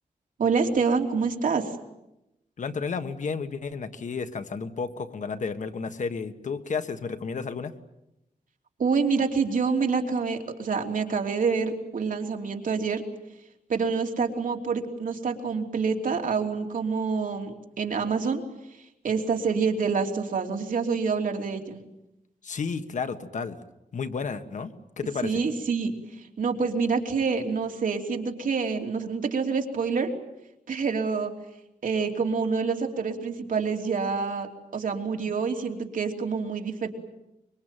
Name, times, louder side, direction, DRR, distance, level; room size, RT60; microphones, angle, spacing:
voice 1, 0.4-1.7 8.8-13.0 13.7-18.4 19.0-21.8 25.2-25.9 26.4-30.1 30.7-31.3 31.8-36.9, right 5 dB, 70° right, 3 dB, 3.1 m, -27 dB
voice 2, 2.6-7.7 22.4-23.6 23.9-24.7 25.0-25.4, left 5 dB, 60° left, 9 dB, 1.5 m, -32 dB
25.0 x 23.5 x 9.1 m, 0.90 s
wide cardioid pair, 155°, 14 cm